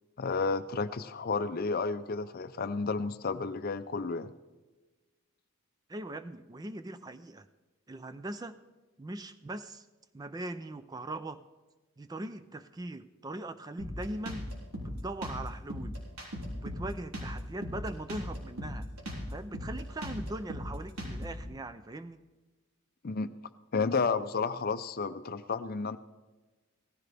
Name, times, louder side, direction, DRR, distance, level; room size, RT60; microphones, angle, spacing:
voice 1, 0.2-4.3 23.0-23.3 23.7-26.0, left 4 dB, 45° left, 12 dB, 0.5 m, -31 dB
voice 2, 5.9-7.5 7.9-8.6 9.0-9.9 10.1-11.4 12.0-14.5 14.8-16.0 16.5-18.9 19.3-22.2, right 1 dB, 15° right, 11 dB, 0.4 m, -40 dB
Drum kit, 13.8-21.4, equal, 90° right, 3.7 m, -38 dB
17.0 x 15.0 x 3.4 m, 1.2 s
head